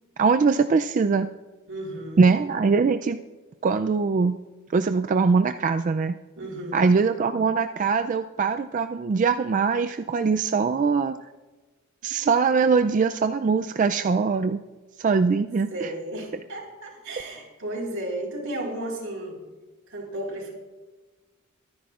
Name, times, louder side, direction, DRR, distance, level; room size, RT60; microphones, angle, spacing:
voice 1, 0.2-1.3 2.2-3.2 3.6-4.4 4.7-6.2 6.7-11.2 12.0-14.6 15.0-15.9, right 5 dB, 35° right, 8 dB, 0.3 m, -22 dB
voice 2, 1.7-2.3 6.4-6.9 15.7-19.4 19.9-20.5, right 1 dB, 75° right, -1 dB, 4.3 m, -33 dB
23.5 x 10.5 x 2.4 m, 1.2 s
head